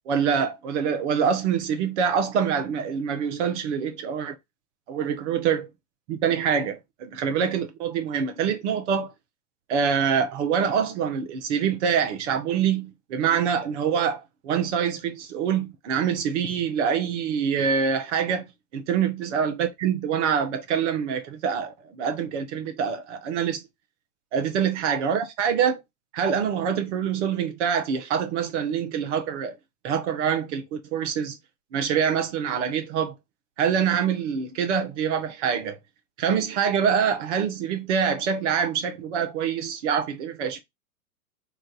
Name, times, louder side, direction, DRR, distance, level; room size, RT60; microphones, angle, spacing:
voice 1, 0.1-4.3 4.9-5.7 6.1-9.1 9.7-18.4 18.7-23.6 24.3-25.8 26.1-29.6 29.8-31.3 31.7-33.1 33.6-35.8 36.2-40.6, right 7 dB, 50° right, 0.9 m, -25 dB
3.2 x 2.5 x 3.7 m
hypercardioid pair, 110°, 45 cm